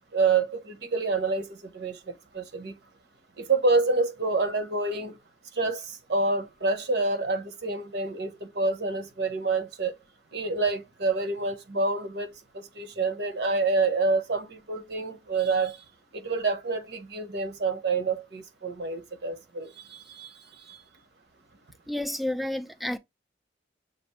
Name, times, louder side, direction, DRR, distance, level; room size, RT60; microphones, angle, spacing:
voice 1, 0.1-2.7 3.4-5.1 5.6-9.9 10.3-12.3 12.5-15.8 16.2-20.3 20.7-20.8, right 3 dB, 60° right, 0.9 m, -27 dB
voice 2, 21.9-23.0, left 1 dB, ahead, 0.3 m, -30 dB
6.7 x 2.6 x 3.0 m
head